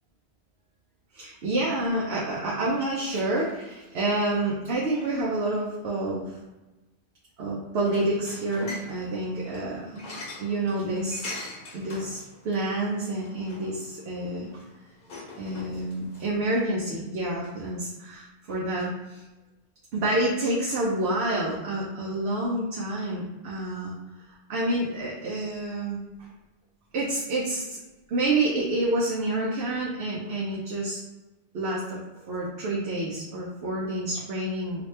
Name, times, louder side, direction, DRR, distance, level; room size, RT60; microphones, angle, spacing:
voice 1, 1.1-6.3 7.4-10.1 10.4-11.3 11.7-14.6 15.4-19.2 19.9-23.9 24.5-26.0 26.9-27.8 28.1-31.0 31.5-32.0 32.2-34.9, right 2 dB, 80° right, -5 dB, 0.9 m, -28 dB
sound 1, 7.8-16.3, left 2 dB, 55° left, 0.8 m, -43 dB
2.9 x 2.4 x 3.2 m, 1.1 s
omnidirectional pair, 1.1 m